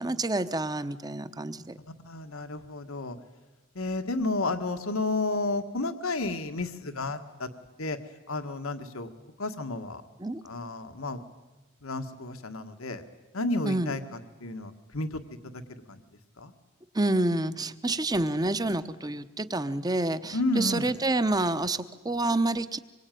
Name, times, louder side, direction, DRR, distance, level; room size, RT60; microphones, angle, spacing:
voice 1, 0.0-1.8 10.2-10.4 13.6-13.9 16.9-22.8, right 2 dB, 20° right, 12 dB, 0.9 m, -28 dB
voice 2, 1.9-3.2 3.8-7.5 7.8-8.0 8.3-9.1 9.4-10.0 10.4-11.2 11.8-13.0 13.3-16.0 16.4-16.5 20.3-20.9, left 2 dB, 85° left, 8 dB, 1.8 m, -32 dB
25.5 x 23.0 x 9.3 m, 1.1 s
head